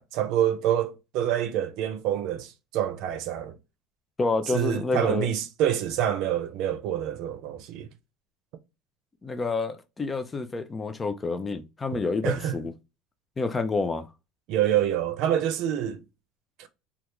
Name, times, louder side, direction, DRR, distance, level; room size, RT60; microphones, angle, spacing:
voice 1, 0.0-3.6 4.5-7.9 12.2-12.6 14.5-16.0 16.6-16.7, right 10 dB, 60° right, 0.6 m, -27 dB
voice 2, 4.2-5.3 9.2-12.7 13.4-14.1, left 3 dB, 20° left, 0.4 m, -28 dB
3.4 x 2.4 x 2.9 m
cardioid pair, 135°, 0 cm